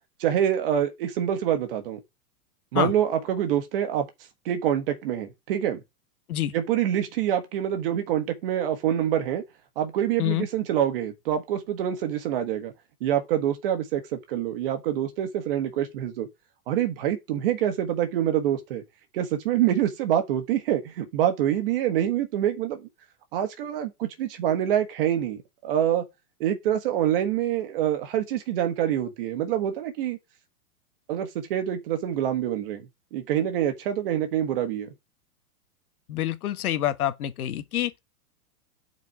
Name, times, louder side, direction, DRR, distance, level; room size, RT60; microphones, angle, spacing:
voice 1, 0.2-2.0 2.7-4.1 4.4-5.8 6.5-9.4 9.7-12.7 13.0-16.3 16.7-18.8 19.1-22.9 23.3-26.0 26.4-30.2 31.1-34.9, right 10 dB, 40° right, 1.5 m, -26 dB
voice 2, 36.1-37.9, left 12 dB, 75° left, 1.2 m, -27 dB
8.4 x 4.6 x 4.5 m
supercardioid pair, 175°, 45 cm